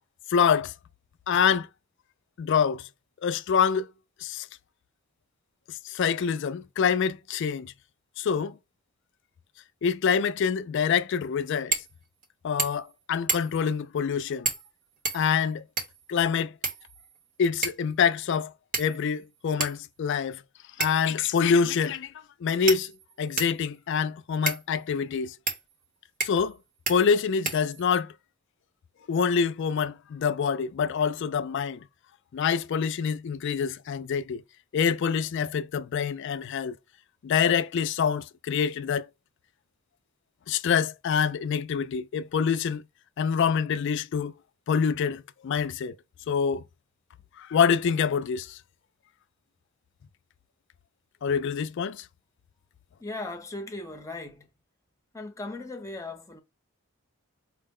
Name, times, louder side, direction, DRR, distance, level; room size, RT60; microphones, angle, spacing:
voice 1, 0.3-0.7 1.3-1.7 2.4-2.9 3.2-3.9 4.2-4.5 5.7-7.7 8.2-8.6 9.8-11.8 12.4-14.5 15.1-15.6 16.1-16.6 17.4-18.5 18.8-20.4 20.8-22.1 22.4-22.9 23.2-25.3 26.2-26.6 26.9-28.1 29.1-31.8 32.3-34.4 34.7-36.8 37.2-39.1 40.5-42.8 43.2-44.3 44.7-46.0 46.3-46.6 47.4-48.6 51.2-52.1, left 6 dB, 55° left, 0.3 m, -26 dB
sound 1, 11.7-11.9 12.2-12.3 12.6-12.9 13.3-13.7 14.4-14.7 15.0-16.1 16.6-17.2 17.6-17.9 18.7-19.1 19.6-19.7 20.8-21.1 21.9-22.0 22.7-23.6 24.5-24.6 25.5-25.6 26.2-26.5 26.9-27.0 27.4-28.0, right 4 dB, 40° right, 0.8 m, -31 dB
voice 2, 53.0-54.5 55.1-56.4, left 2 dB, 15° left, 0.7 m, -38 dB
4.5 x 2.1 x 3.6 m
head